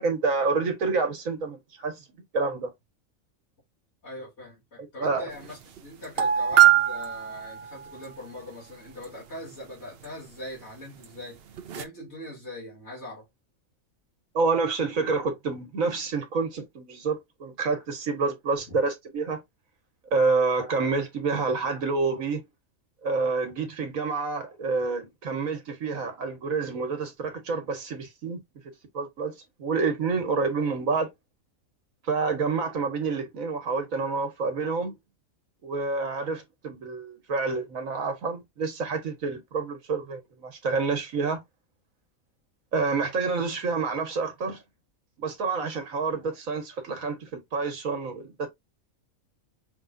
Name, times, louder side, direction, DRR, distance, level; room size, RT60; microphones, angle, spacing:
voice 1, 0.0-2.0 2.3-2.7 4.8-5.3 14.3-19.4 20.1-22.4 23.0-28.4 28.9-31.1 32.0-34.9 35.6-41.4 42.7-44.6 45.2-48.5, right 4 dB, 80° right, 1.7 m, -28 dB
voice 2, 4.0-11.4 11.7-13.3 18.7-18.8, left 1 dB, 55° left, 3.1 m, -41 dB
sound 1, 5.4-5.5 5.8-5.9 6.2-8.1 11.0-11.1 11.6-11.8, right 11 dB, 55° right, 0.8 m, -22 dB
5.6 x 3.6 x 2.6 m
omnidirectional pair, 1.4 m